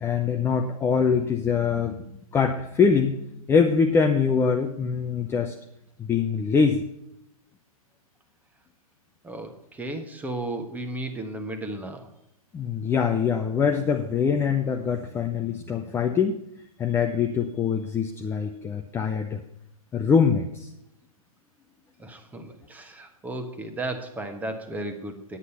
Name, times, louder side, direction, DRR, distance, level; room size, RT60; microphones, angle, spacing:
voice 1, 0.0-2.0 2.3-3.2 3.5-5.5 6.0-6.8 12.5-16.4 16.8-19.4 19.9-20.7, left 6 dB, 15° left, 4 dB, 0.6 m, -23 dB
voice 2, 9.2-12.1 22.0-25.4, right 2 dB, 10° right, 6 dB, 1.3 m, -34 dB
9.8 x 8.2 x 5.6 m, 0.80 s
figure-of-eight pair, 115°, 19 cm